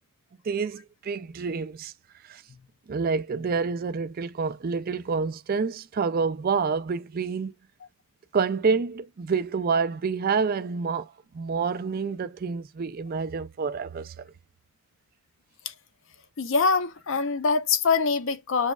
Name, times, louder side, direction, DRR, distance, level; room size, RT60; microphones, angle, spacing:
voice 1, 0.5-1.9 2.3-2.4 2.9-7.5 8.3-11.1 11.3-14.1, right 5 dB, 40° right, 0.4 m, -28 dB
voice 2, 16.4-18.7, left 4 dB, 55° left, 0.5 m, -24 dB
6.3 x 3.0 x 2.3 m
head